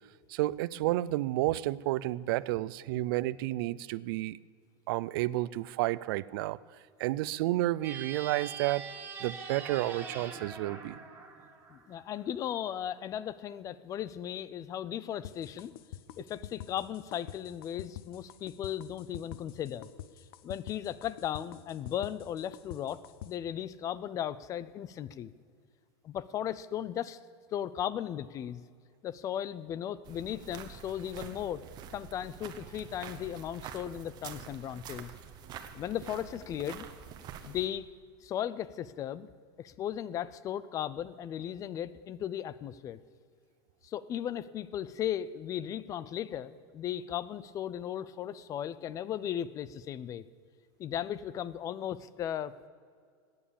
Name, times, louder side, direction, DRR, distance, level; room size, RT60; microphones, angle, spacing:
voice 1, 0.3-4.4 4.9-6.6 7.0-8.9 9.2-11.0, right 17 dB, 60° right, 20 dB, 0.5 m, -31 dB
sound 1, 7.8-12.2, right 5 dB, 15° right, 1.7 m, -43 dB
voice 2, 11.7-15.7 16.2-19.9 20.4-23.0 23.2-25.3 26.0-27.2 27.5-28.6 29.0-31.6 31.9-35.1 35.7-36.9 37.5-37.9 38.2-39.3 39.6-43.0 43.8-50.2 50.8-52.7, left 10 dB, 25° left, 18 dB, 0.5 m, -36 dB
sound 2, 15.2-23.3, left 12 dB, 70° left, 0.7 m, -45 dB
sound 3, 30.0-37.7, right 8 dB, 30° right, 1.1 m, -47 dB
15.5 x 9.6 x 7.1 m, 2.1 s
supercardioid pair, 155°, 13 cm